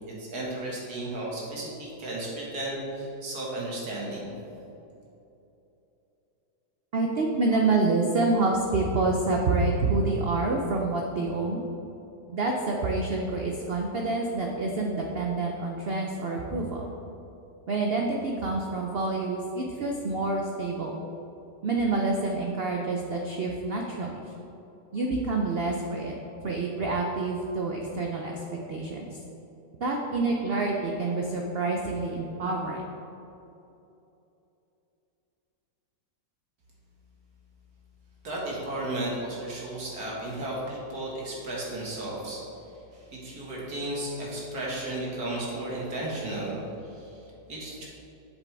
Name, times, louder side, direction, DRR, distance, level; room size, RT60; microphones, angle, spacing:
voice 1, 0.1-4.4 38.2-42.4 42.9-46.6 46.9-47.2 47.5-47.9, right 1 dB, 65° right, -5 dB, 2.3 m, -34 dB
voice 2, 6.9-11.6 12.3-16.8 17.7-21.0 21.6-24.1 24.9-26.1 26.4-28.4 28.7-29.2 29.8-32.8, right 3 dB, 80° right, 0 dB, 0.5 m, -27 dB
8.0 x 7.2 x 3.4 m, 2.9 s
omnidirectional pair, 1.9 m